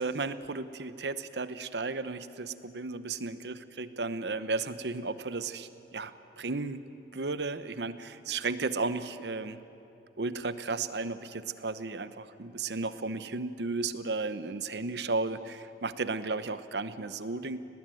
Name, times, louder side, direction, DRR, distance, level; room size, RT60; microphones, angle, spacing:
voice 1, 0.0-6.8 7.1-9.6 10.2-17.6, right 3 dB, 80° right, 13 dB, 0.9 m, -34 dB
19.5 x 19.0 x 9.2 m, 2.7 s
head